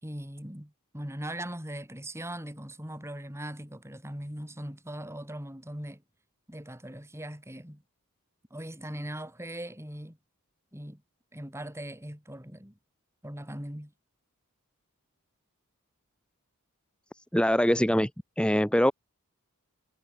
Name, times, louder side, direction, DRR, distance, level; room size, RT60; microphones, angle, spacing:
voice 1, 0.0-6.0 6.5-7.8 8.5-10.2 10.7-11.0 11.3-12.7 13.2-13.9, right 1 dB, 10° right, 6.1 m, -40 dB
voice 2, 17.3-18.1 18.4-18.9, equal, 5° left, 2.2 m, -23 dB
head